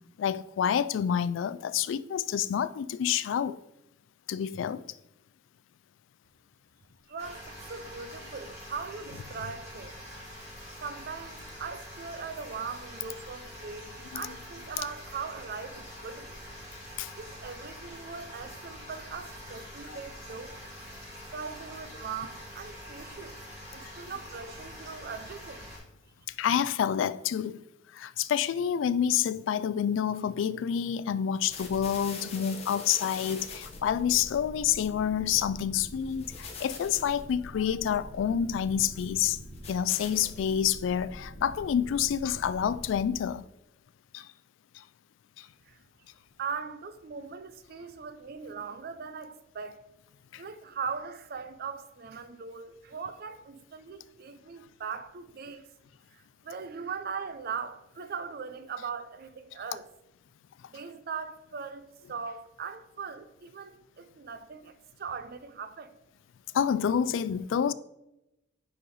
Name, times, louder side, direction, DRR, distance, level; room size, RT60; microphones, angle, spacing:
voice 1, 0.2-3.6 4.3-4.8 14.1-14.3 17.0-17.1 19.9-20.0 26.4-27.6 27.9-39.4 39.7-43.5 44.1-44.3 44.7-44.8 45.4-45.5 50.3-50.4 66.5-67.7, left 8 dB, 75° left, 0.3 m, -28 dB
voice 2, 7.1-10.2 10.8-16.4 17.2-20.6 21.3-23.3 23.7-25.7 45.7-45.8 46.4-49.8 50.4-55.7 56.1-59.9 60.7-66.0, right 5 dB, 50° right, 0.5 m, -40 dB
sound 1, 7.2-25.8, equal, 15° right, 2.2 m, -45 dB
sound 2, 31.5-43.3, left 2 dB, 35° left, 0.9 m, -44 dB
5.5 x 5.4 x 4.0 m
head